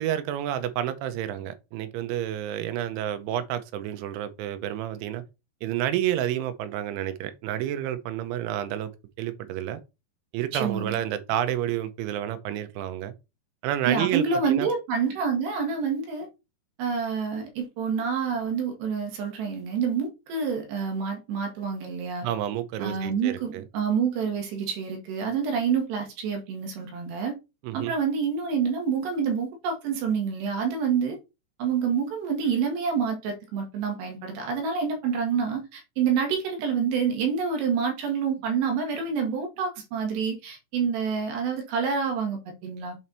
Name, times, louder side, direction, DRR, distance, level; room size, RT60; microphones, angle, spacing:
voice 1, 0.0-5.2 5.6-8.9 9.2-9.8 10.3-13.1 13.6-14.7 22.2-23.6 27.6-27.9, right 11 dB, 90° right, 3.2 m, -30 dB
voice 2, 10.5-11.0 13.9-16.3 16.8-22.3 22.8-27.4 27.7-31.2 31.6-43.0, right 6 dB, 70° right, 3.7 m, -27 dB
7.8 x 4.3 x 4.1 m
omnidirectional pair, 5.3 m